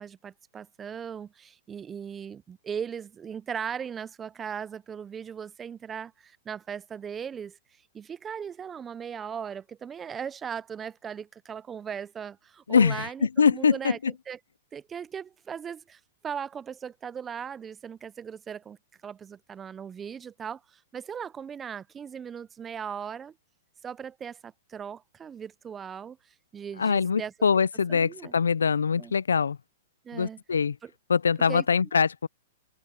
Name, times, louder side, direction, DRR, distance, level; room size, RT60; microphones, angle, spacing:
voice 1, 0.0-7.6 7.9-14.0 14.3-14.4 14.7-18.8 19.0-23.3 23.8-27.3 27.9-28.3 29.0-29.1 30.0-30.4 30.8-30.9 31.4-31.7, right 7 dB, 20° right, 0.5 m, -38 dB
voice 2, 12.7-14.1 26.8-29.6 30.1-30.8 31.1-32.3, left 6 dB, 90° left, 0.4 m, -23 dB
hypercardioid pair, 125°, 0 cm